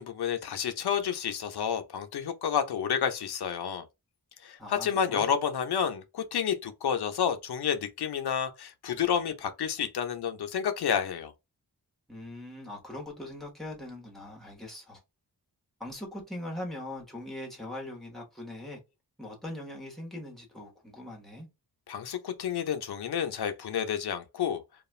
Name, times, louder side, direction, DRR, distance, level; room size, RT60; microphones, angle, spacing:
voice 1, 0.0-3.9 4.4-11.3 21.9-24.6, left 8 dB, 85° left, 0.6 m, -30 dB
voice 2, 4.6-5.3 12.1-15.0 15.8-18.8 19.2-21.5, left 1 dB, ahead, 1.0 m, -41 dB
2.4 x 2.3 x 3.1 m
wide cardioid pair, 155°, 38 cm